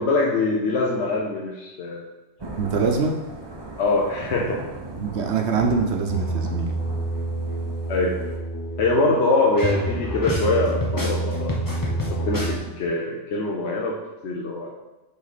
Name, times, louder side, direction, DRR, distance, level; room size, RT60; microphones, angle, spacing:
voice 1, 0.0-2.0 2.8-2.9 3.8-4.6 7.9-8.1 8.8-14.7, left 2 dB, 70° left, -2 dB, 1.0 m, -24 dB
Thunder / Rain, 2.4-8.4, right 2 dB, 25° right, 0.7 m, -38 dB
voice 2, 2.6-3.2 4.9-6.8, right 5 dB, 70° right, 3 dB, 1.1 m, -24 dB
sound 1, 6.1-12.6, right 1 dB, 20° left, 0.7 m, -27 dB
7.4 x 3.6 x 4.1 m, 1.1 s
omnidirectional pair, 1.2 m